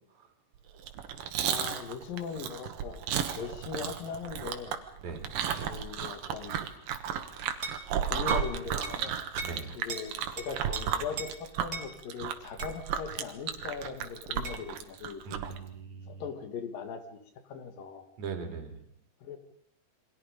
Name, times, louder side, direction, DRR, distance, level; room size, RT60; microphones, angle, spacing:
Chewing mastication, 0.8-15.6, right 9 dB, 75° right, 3.0 m, -34 dB
voice 1, 1.4-3.0 3.3-4.8 5.6-6.6 8.0-9.2 9.8-15.4 16.1-17.2 17.5-18.1 19.2-19.4, left 6 dB, 75° left, 8 dB, 3.7 m, -39 dB
sound 1, 7.6-7.8 8.3-8.5 8.8-9.0 9.4-9.6 9.9-10.0 10.4-10.8 11.2-11.3 11.7-11.9 12.6-12.8 14.4-14.6, right 3 dB, 30° right, 2.2 m, -38 dB
voice 2, 9.4-9.7 15.3-16.2 18.2-18.9, right 5 dB, 55° right, 5 dB, 3.8 m, -40 dB
28.0 x 23.5 x 5.2 m, 0.73 s
omnidirectional pair, 4.0 m